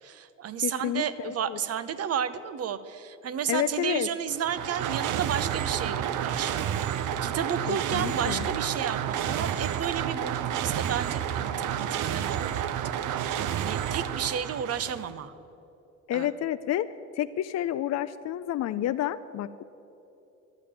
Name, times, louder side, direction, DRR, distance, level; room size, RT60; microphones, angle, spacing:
voice 1, 0.0-12.8 13.1-15.3 16.1-16.3, right 8 dB, 55° right, 14 dB, 0.8 m, -32 dB
voice 2, 0.6-1.6 3.5-4.1 7.7-8.5 16.1-16.9 17.1-19.6, left 12 dB, 60° left, 10 dB, 0.4 m, -30 dB
sound 1, 4.3-15.1, right 9 dB, 85° right, 0.7 m, -30 dB
12.0 x 8.5 x 8.8 m, 2.9 s
cardioid pair, 90°, 30 cm